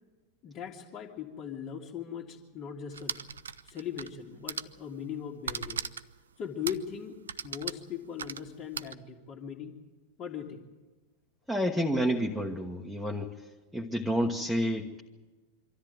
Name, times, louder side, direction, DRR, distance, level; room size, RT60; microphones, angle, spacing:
voice 1, 0.4-3.1 3.6-5.8 6.4-7.2 7.4-9.7 10.2-10.7, left 8 dB, 35° left, -4 dB, 2.1 m, -39 dB
sound 1, 2.9-4.2 4.4-4.8 5.4-6.2 6.6-6.9 7.3-8.9, right 7 dB, 70° right, 0.6 m, -37 dB
voice 2, 11.5-13.3 13.7-15.0, equal, ahead, 0 dB, 1.4 m, -29 dB
24.5 x 13.5 x 9.3 m, 1.3 s
figure-of-eight pair, 90°, 0 cm